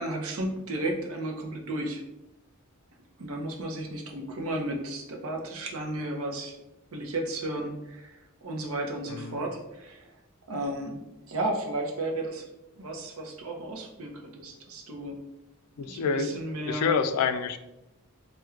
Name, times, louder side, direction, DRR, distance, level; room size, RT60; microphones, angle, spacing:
voice 1, 0.0-2.0 3.2-6.6 6.9-10.1 10.5-11.0 11.3-15.1 15.9-16.9, right 1 dB, 70° right, 2 dB, 0.6 m, -33 dB
voice 2, 9.1-9.4 15.8-16.3 16.7-17.6, left 6 dB, 80° left, 14 dB, 0.3 m, -27 dB
4.3 x 2.2 x 2.4 m, 0.92 s
head